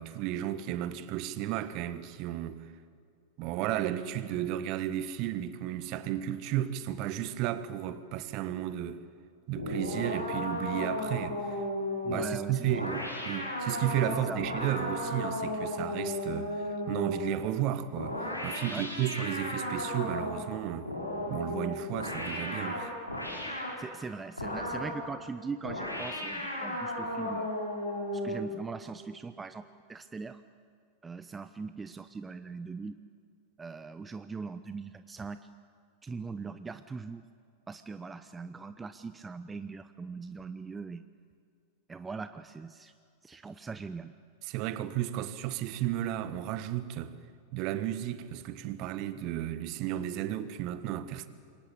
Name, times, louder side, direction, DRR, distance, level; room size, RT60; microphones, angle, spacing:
voice 1, 0.0-2.7 3.4-9.0 9.5-11.6 12.1-20.9 21.3-22.9 44.4-47.2 47.5-51.3, right 12 dB, 40° right, 1.5 m, -33 dB
sound 1, 9.6-17.4 18.0-20.5 20.9-23.8 24.4-25.0 25.6-28.5, left 1 dB, 85° left, 6.0 m, -35 dB
voice 2, 12.0-12.8 14.3-14.4 18.7-18.8 23.8-27.5 28.1-29.6 29.9-30.4 31.0-33.0 33.6-35.4 36.0-37.2 37.7-41.0 41.9-42.9 43.2-44.1, right 4 dB, 15° right, 0.7 m, -40 dB
27.5 x 23.5 x 8.5 m
figure-of-eight pair, 90°, 0 cm